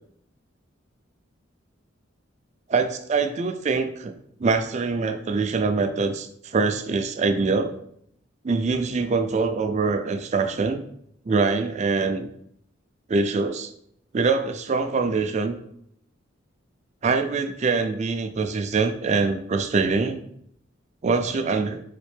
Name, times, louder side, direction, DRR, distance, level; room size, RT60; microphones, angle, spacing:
voice 1, 2.7-4.1 4.4-6.3 6.5-7.7 8.4-10.8 11.3-12.3 13.1-13.7 14.1-15.6 17.0-20.2 21.0-21.8, right 4 dB, 35° right, 7 dB, 0.4 m, -24 dB
4.1 x 3.5 x 3.2 m, 0.69 s
head